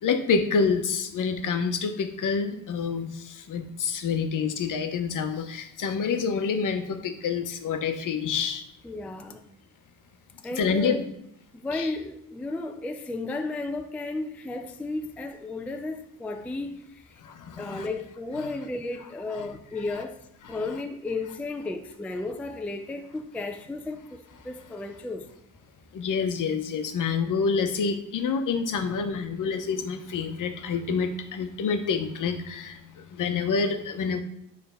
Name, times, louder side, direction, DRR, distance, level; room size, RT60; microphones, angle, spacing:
voice 1, 0.0-8.7 10.5-11.0 11.7-11.9 17.2-17.9 18.4-18.5 19.3-19.5 19.9-20.0 20.4-20.7 25.9-34.2, left 5 dB, 60° left, 0.8 m, -28 dB
voice 2, 8.8-9.4 10.4-11.1 11.5-17.2 17.6-25.3, left 2 dB, 5° left, 0.3 m, -34 dB
9.0 x 3.4 x 5.5 m
cardioid pair, 155°, 36 cm